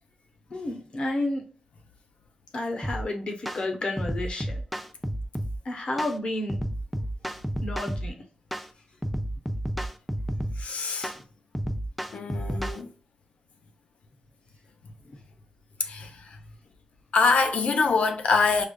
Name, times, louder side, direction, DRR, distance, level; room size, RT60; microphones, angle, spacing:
voice 1, 0.5-1.4 2.5-4.6 5.6-6.6 7.6-8.1, left 2 dB, 50° left, 0.9 m, -31 dB
sound 1, 2.8-3.0 3.5-3.6 4.0-5.6 6.0-6.2 6.5-8.1 8.5-8.7 9.0-10.6 11.0-11.2 11.5-12.8, right 1 dB, ahead, 0.3 m, -31 dB
voice 2, 10.6-11.1 12.1-12.9 15.8-16.4 17.1-18.6, left 4 dB, 85° left, 0.6 m, -24 dB
4.9 x 2.3 x 2.3 m
wide cardioid pair, 155°, 2 cm